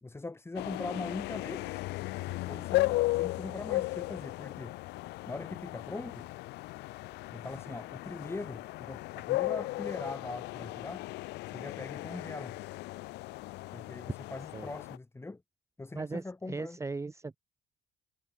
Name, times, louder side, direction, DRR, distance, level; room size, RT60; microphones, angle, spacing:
voice 1, 0.0-1.9 2.2-4.8 5.3-6.3 7.3-11.0 11.5-12.6 13.7-15.4 15.8-16.8, left 2 dB, 15° left, 3.5 m, -41 dB
sound 1, 0.5-15.0, left 20 dB, 85° left, 1.0 m, -36 dB
voice 2, 15.9-17.4, right 3 dB, 15° right, 0.9 m, -38 dB
cardioid pair, 110°, 17 cm